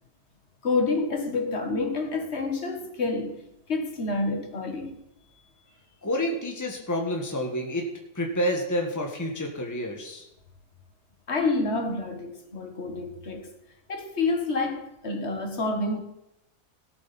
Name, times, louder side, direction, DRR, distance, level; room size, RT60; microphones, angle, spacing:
voice 1, 0.6-3.4 3.7-5.0 11.3-13.5 13.9-16.0, left 3 dB, 50° left, 1.9 m, -28 dB
voice 2, 6.0-7.9 8.1-10.2, equal, 10° left, 1.7 m, -29 dB
17.5 x 8.1 x 4.3 m
omnidirectional pair, 1.5 m